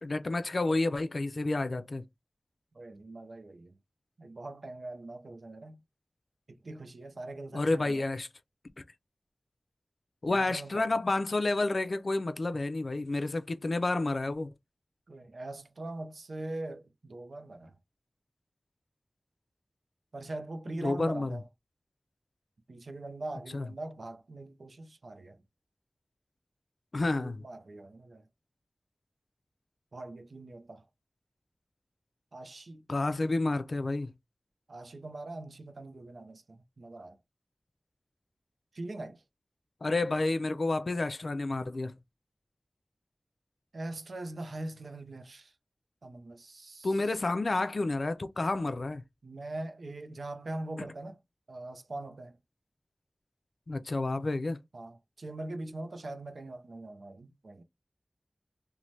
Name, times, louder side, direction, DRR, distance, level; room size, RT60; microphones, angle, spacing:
voice 1, 0.0-2.0 7.5-8.3 10.2-14.5 20.8-21.4 23.5-23.7 26.9-27.5 32.9-34.1 39.8-41.9 46.8-49.0 53.7-54.6, left 2 dB, 65° left, 0.3 m, -30 dB
voice 2, 2.7-3.8 4.2-5.8 6.5-8.1 10.3-11.0 15.1-17.7 20.1-21.4 22.7-25.4 27.1-28.3 29.9-30.9 32.3-32.8 34.7-37.2 38.7-39.2 43.7-45.5 46.0-46.9 49.2-51.2 51.5-52.4 54.7-57.6, right 2 dB, 85° right, 0.4 m, -42 dB
3.1 x 2.1 x 2.6 m
wide cardioid pair, 50°, 0 cm